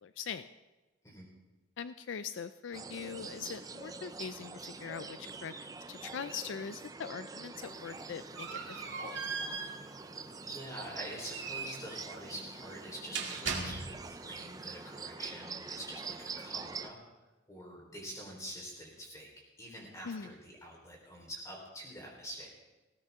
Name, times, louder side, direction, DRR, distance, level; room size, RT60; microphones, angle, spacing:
voice 1, 0.0-0.5 1.8-9.2 20.0-20.3, left 6 dB, 70° left, 12 dB, 0.4 m, -42 dB
sound 1, 2.7-16.9, right 4 dB, 20° right, 0.5 m, -45 dB
sound 2, 7.6-14.2, right 4 dB, 65° right, 1.9 m, -40 dB
voice 2, 10.4-17.0 17.5-19.3 19.6-22.5, equal, 15° left, -1 dB, 4.0 m, -46 dB
19.0 x 16.0 x 3.6 m, 1.1 s
head